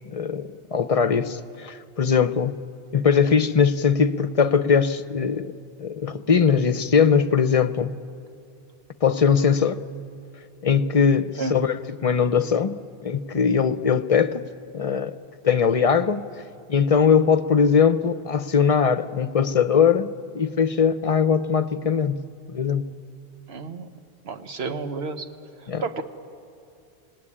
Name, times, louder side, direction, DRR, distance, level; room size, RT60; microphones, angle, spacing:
voice 1, 0.0-2.6 2.9-5.5 5.8-7.9 9.0-9.8 10.6-14.5 14.7-15.1 15.4-16.4 16.7-22.2 22.5-22.9 25.7-25.8, left 6 dB, 40° left, 12 dB, 0.7 m, -21 dB
voice 2, 23.5-23.9 24.2-25.3 25.6-26.0, right 4 dB, 80° right, 8 dB, 1.4 m, -31 dB
26.5 x 18.0 x 9.9 m, 2.5 s
omnidirectional pair, 1.0 m